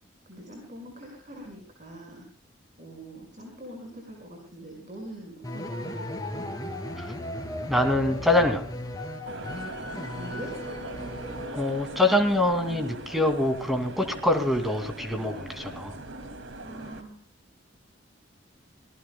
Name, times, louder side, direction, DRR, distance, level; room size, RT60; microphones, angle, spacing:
voice 1, 0.3-2.3 2.8-6.5 10.1-10.5 16.6-17.2, right 1 dB, 40° right, 0 dB, 5.6 m, -43 dB
sound 1, 5.4-11.9, left 1 dB, 20° left, 2.7 m, -36 dB
voice 2, 7.7-8.6 11.5-15.9, left 1 dB, ahead, 6 dB, 2.5 m, -24 dB
sound 2, 9.2-17.0, right 2 dB, 90° right, 2.5 m, -40 dB
26.0 x 19.0 x 2.3 m, 0.36 s
head